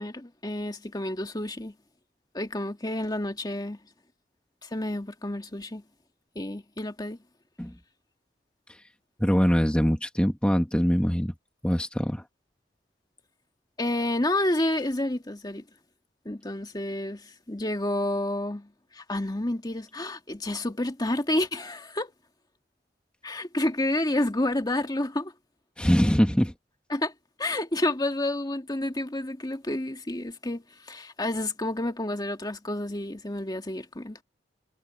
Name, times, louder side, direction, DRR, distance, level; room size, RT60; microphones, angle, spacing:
voice 1, 0.0-1.7 2.3-3.8 4.6-5.8 6.4-7.2 13.8-15.6 16.3-22.1 23.2-25.3 26.9-27.1 27.4-34.2, left 1 dB, 25° left, 2.0 m, -29 dB
voice 2, 9.2-11.3 11.6-12.2 25.8-26.5, equal, 5° left, 1.7 m, -23 dB
head